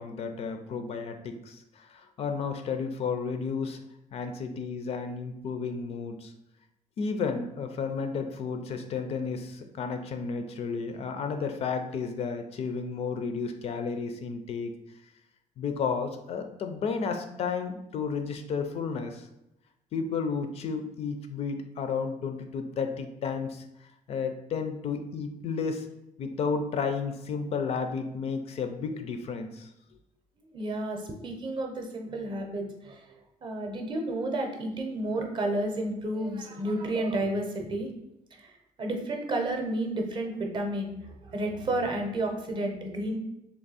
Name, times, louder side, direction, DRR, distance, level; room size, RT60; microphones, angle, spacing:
voice 1, 0.0-3.8 4.1-6.3 7.0-14.7 15.6-19.3 19.9-23.6 24.1-25.9 26.2-29.7, left 5 dB, 45° left, 6 dB, 0.4 m, -32 dB
voice 2, 30.5-33.0 33.4-37.9 38.3-43.2, right 1 dB, 35° right, 3 dB, 0.6 m, -31 dB
3.5 x 3.0 x 4.0 m, 0.87 s
cardioid pair, 175°, 14 cm